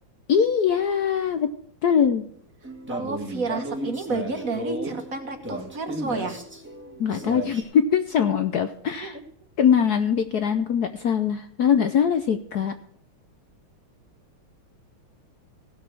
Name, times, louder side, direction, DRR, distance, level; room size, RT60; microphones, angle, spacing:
voice 1, 0.3-1.5 1.8-2.2 7.0-9.2 9.6-12.7, left 7 dB, 65° left, 8 dB, 1.0 m, -22 dB
sound 1, 2.6-7.6, right 1 dB, 5° right, 2.0 m, -34 dB
voice 2, 2.9-6.4 9.0-9.2, right 4 dB, 45° right, 6 dB, 1.6 m, -31 dB
16.5 x 6.5 x 6.0 m, 0.65 s
omnidirectional pair, 2.3 m